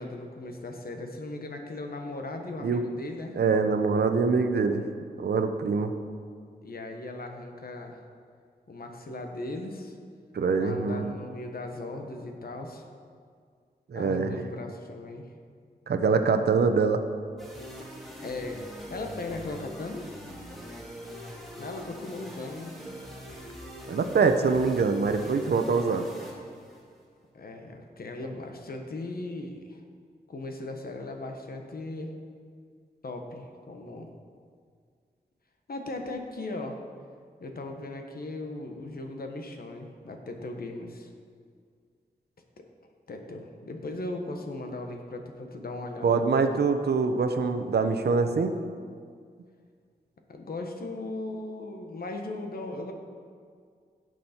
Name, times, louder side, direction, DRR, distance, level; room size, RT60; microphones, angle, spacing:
voice 1, 0.0-3.4 6.6-8.0 8.7-10.0 10.6-12.9 13.9-15.3 18.2-20.1 21.6-22.8 27.3-29.8 30.3-32.1 33.0-34.1 35.7-36.8 37.4-41.1 42.6-42.7 43.1-46.2 50.3-52.9, left 2 dB, 65° left, 3 dB, 1.3 m, -38 dB
voice 2, 3.3-4.8 5.2-5.9 10.3-11.1 13.9-14.3 15.9-17.0 23.9-26.1 46.0-48.5, right 4 dB, 80° right, 7 dB, 0.8 m, -24 dB
sound 1, 17.4-27.0, equal, ahead, 2.0 m, -43 dB
16.5 x 6.2 x 4.4 m, 2.1 s
wide cardioid pair, 130°, 17 cm